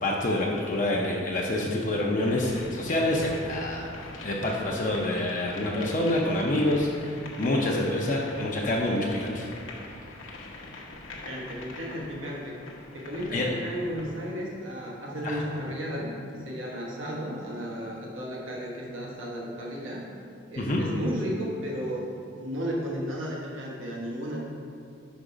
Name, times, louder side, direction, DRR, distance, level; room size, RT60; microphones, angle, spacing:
voice 1, 0.0-3.9 4.2-9.5 13.3-13.5 15.2-15.4 20.6-20.8, left 1 dB, 40° left, -2 dB, 0.6 m, -27 dB
sound 1, 2.2-14.3, left 3 dB, 85° left, 0.8 m, -44 dB
voice 2, 11.1-12.5 12.9-20.1 20.5-24.4, equal, 85° right, -3 dB, 1.2 m, -34 dB
5.3 x 5.1 x 4.9 m, 2.4 s
head